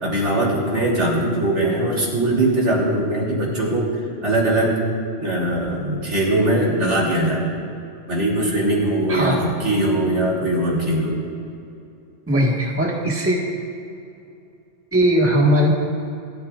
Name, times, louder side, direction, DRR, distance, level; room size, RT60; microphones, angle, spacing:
voice 1, 0.0-4.8 5.2-7.6 8.1-11.2, right 1 dB, 70° right, -3 dB, 3.6 m, -21 dB
voice 2, 12.3-13.4 14.9-15.7, equal, 10° right, -3 dB, 1.7 m, -18 dB
27.0 x 13.0 x 2.5 m, 2.6 s
omnidirectional pair, 1.2 m